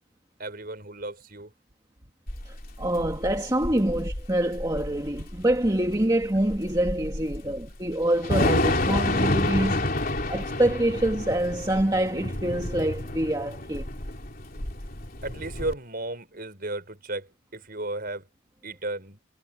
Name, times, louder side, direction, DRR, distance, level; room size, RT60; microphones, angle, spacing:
voice 1, 0.4-1.5 3.0-3.1 3.8-4.0 5.2-5.3 7.3-7.6 15.2-18.3 18.6-19.2, right 2 dB, 45° right, 5.3 m, -35 dB
Thunder / Rain, 2.3-15.7, left 1 dB, 40° left, 3.6 m, -29 dB
voice 2, 2.5-9.9 10.3-13.8, right 1 dB, 20° right, 1.8 m, -26 dB
head